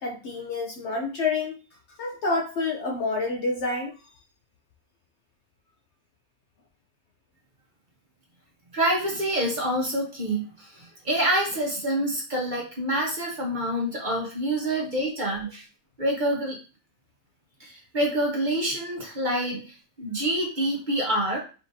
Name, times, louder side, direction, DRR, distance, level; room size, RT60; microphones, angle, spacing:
voice 1, 0.0-1.6 2.0-4.0, left 3 dB, 60° left, 1 dB, 0.8 m, -28 dB
voice 2, 8.7-15.7 16.0-16.6 17.6-21.4, right 1 dB, 35° right, -2 dB, 1.1 m, -27 dB
4.9 x 3.2 x 2.6 m, 0.34 s
omnidirectional pair, 1.5 m